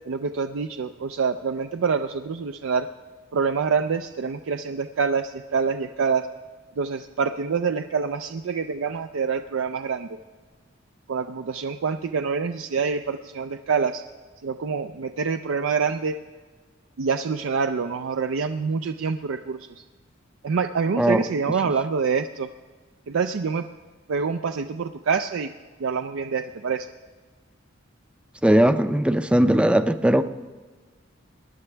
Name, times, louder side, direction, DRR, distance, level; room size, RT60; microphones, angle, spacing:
voice 1, 0.1-2.9 3.3-6.3 6.8-10.2 11.1-14.0 14.4-16.1 17.0-19.7 20.4-22.5 23.1-23.7 24.1-25.5 25.8-26.9, right 5 dB, 75° right, 8 dB, 0.4 m, -26 dB
voice 2, 28.4-30.2, right 1 dB, 5° right, 10 dB, 0.4 m, -19 dB
20.0 x 10.5 x 3.4 m, 1.4 s
head